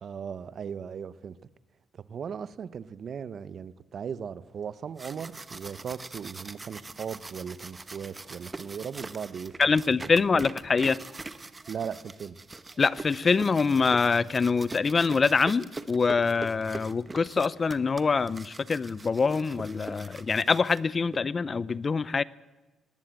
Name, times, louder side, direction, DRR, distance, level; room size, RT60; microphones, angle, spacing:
voice 1, 0.0-1.4 1.9-9.7 10.0-10.5 11.7-12.4, right 7 dB, 55° right, 16 dB, 0.8 m, -38 dB
sound 1, 4.7-21.2, right 3 dB, 25° right, 1.0 m, -43 dB
voice 2, 9.6-11.0 12.8-22.2, left 4 dB, 35° left, 20 dB, 0.6 m, -25 dB
19.5 x 16.0 x 8.8 m, 1.1 s
cardioid pair, 90°, 0 cm